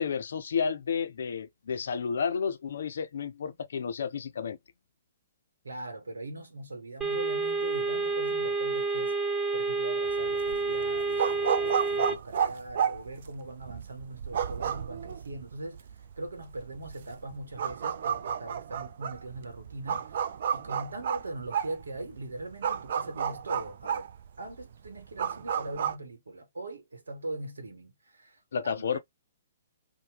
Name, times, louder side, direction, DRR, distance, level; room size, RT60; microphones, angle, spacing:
voice 1, 0.0-4.6 28.5-29.0, left 6 dB, 65° left, 0.4 m, -31 dB
voice 2, 5.6-9.1 9.5-24.1 24.4-29.0, right 2 dB, 75° right, 0.9 m, -41 dB
sound 1, 7.0-12.2, right 3 dB, 10° right, 0.7 m, -29 dB
sound 2, 10.1-26.0, right 8 dB, 60° right, 0.4 m, -32 dB
2.8 x 2.1 x 3.3 m
figure-of-eight pair, 125°, 0 cm